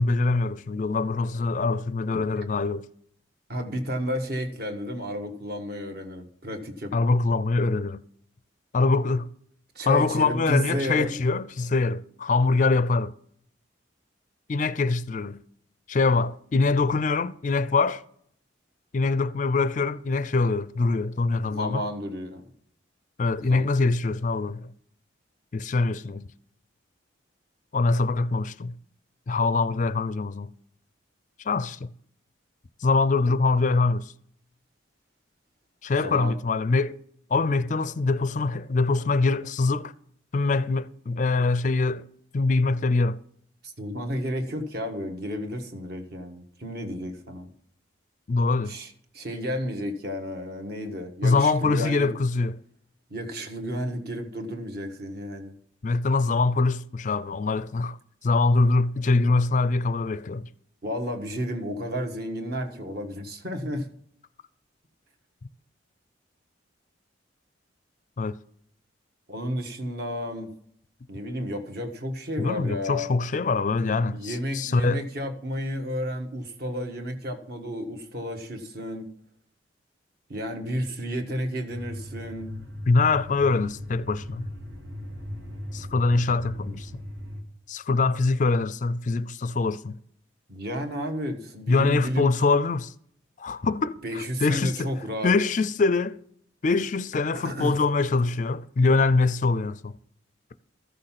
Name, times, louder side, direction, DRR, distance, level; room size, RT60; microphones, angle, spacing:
voice 1, 0.0-2.9 6.9-8.0 8.7-9.3 9.9-13.1 14.5-15.4 15.9-18.0 18.9-21.8 23.2-24.7 25.5-26.3 27.7-28.7 29.3-30.5 31.4-31.9 32.8-34.1 35.8-37.0 37.3-39.9 40.3-42.0 42.3-43.2 48.3-48.8 51.2-52.6 55.8-60.5 68.2-68.3 72.4-75.0 82.9-84.5 85.7-86.9 87.7-90.0 91.7-92.9 93.4-94.9 95.2-96.2 96.6-99.9, left 3 dB, 40° left, 0.4 m, -24 dB
voice 2, 3.5-6.9 9.7-11.1 21.4-22.4 23.4-23.7 36.0-36.3 43.6-47.5 48.6-52.1 53.1-55.5 60.8-63.9 69.3-70.5 71.1-73.1 74.1-79.1 80.3-82.5 90.5-92.3 94.0-95.3 97.4-97.8, equal, 55° right, 1.5 m, -32 dB
sound 1, 81.7-87.4, left 1 dB, 80° right, 2.2 m, -38 dB
14.0 x 6.5 x 5.8 m
head